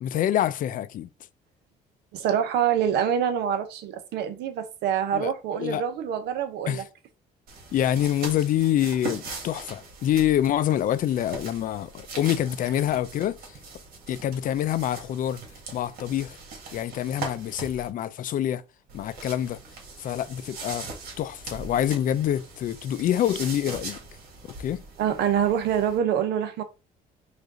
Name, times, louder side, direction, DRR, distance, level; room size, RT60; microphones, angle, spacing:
voice 1, 0.0-1.1 5.1-5.3 5.6-5.8 6.7-6.8 7.7-13.6 14.1-15.4 15.7-16.4 16.7-18.6 18.9-19.6 20.0-20.9 21.2-24.0 24.4-24.8, left 11 dB, 55° left, 0.4 m, -26 dB
voice 2, 2.1-6.8 25.0-26.6, right 9 dB, 80° right, 0.9 m, -25 dB
sound 1, 7.5-17.9 18.9-26.0, right 4 dB, 60° right, 1.9 m, -41 dB
5.0 x 2.6 x 3.8 m
cardioid pair, 110°, 17 cm